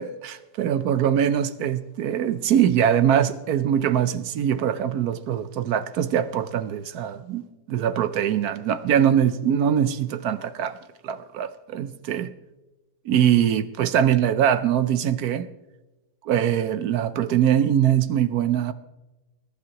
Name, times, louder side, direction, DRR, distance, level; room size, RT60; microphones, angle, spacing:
voice 1, 0.0-7.4 7.7-10.8 11.0-12.3 13.1-15.5 16.2-18.7, right 9 dB, 70° right, 13 dB, 1.1 m, -22 dB
20.5 x 11.5 x 3.0 m, 1.0 s
omnidirectional pair, 1.8 m